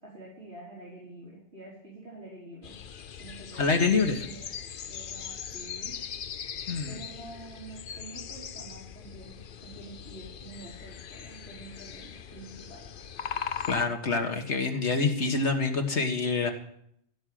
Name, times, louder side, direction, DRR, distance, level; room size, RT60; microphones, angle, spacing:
voice 1, 0.0-2.7 3.2-4.5 4.9-5.9 6.9-12.9, right 2 dB, 65° right, -8 dB, 4.4 m, -47 dB
sound 1, 2.6-13.8, left 8 dB, 55° left, 0.8 m, -40 dB
voice 2, 3.6-4.2 6.7-7.0 13.7-16.5, left 4 dB, 85° left, 5 dB, 1.9 m, -26 dB
16.0 x 6.3 x 9.4 m, 0.71 s
omnidirectional pair, 1.1 m